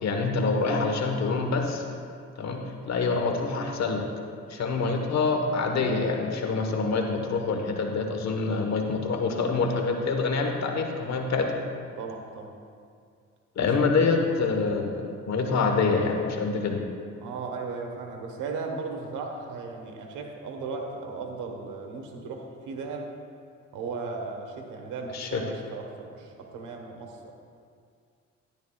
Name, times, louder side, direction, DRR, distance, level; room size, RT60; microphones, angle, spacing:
voice 1, 0.0-1.8 2.4-4.0 4.5-11.5 13.6-16.8 25.1-25.4, left 4 dB, 60° left, 3 dB, 1.2 m, -26 dB
voice 2, 12.0-12.5 13.6-13.7 14.3-14.5 17.2-23.1 23.7-27.3, right 4 dB, 90° right, 2 dB, 1.2 m, -36 dB
12.0 x 10.5 x 2.3 m, 2.2 s
cardioid pair, 90°, 30 cm